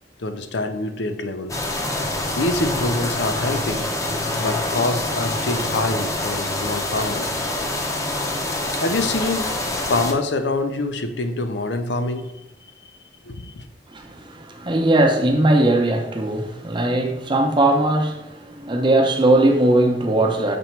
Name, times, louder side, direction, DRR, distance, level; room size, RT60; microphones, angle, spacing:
voice 1, 0.2-1.6 2.3-3.9 4.4-7.3 8.4-9.6 9.9-12.3 13.2-13.6, left 2 dB, 70° left, 0.6 m, -25 dB
sound 1, 1.5-10.1, left 1 dB, 20° left, 0.7 m, -26 dB
voice 2, 13.9-20.6, right 1 dB, 25° right, 0.7 m, -19 dB
6.9 x 3.0 x 4.4 m
head